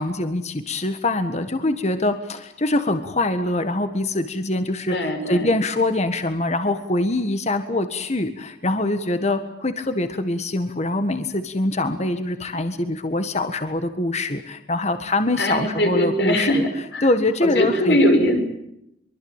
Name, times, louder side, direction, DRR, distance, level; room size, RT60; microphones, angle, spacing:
voice 1, 0.0-5.0 5.3-16.6 17.0-18.0, left 2 dB, 40° left, 9 dB, 1.6 m, -24 dB
voice 2, 4.9-5.5 15.4-17.1 17.4-18.4, equal, 75° left, 5 dB, 6.2 m, -21 dB
24.5 x 24.0 x 9.0 m, 0.81 s
head